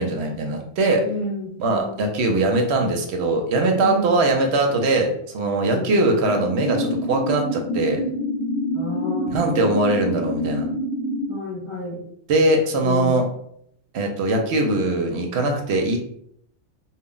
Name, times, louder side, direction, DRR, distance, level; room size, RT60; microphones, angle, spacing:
voice 1, 0.0-1.0 1.6-8.0 9.3-10.7 12.3-13.2 13.9-16.0, right 2 dB, 70° right, 3 dB, 0.8 m, -21 dB
voice 2, 1.0-2.1 3.8-4.2 5.6-5.9 8.7-9.7 11.3-12.1 12.8-13.2, left 2 dB, 45° left, -6 dB, 0.4 m, -31 dB
sound 1, 6.3-11.3, left 1 dB, 75° left, 0.9 m, -27 dB
2.2 x 2.0 x 3.7 m, 0.70 s
omnidirectional pair, 1.2 m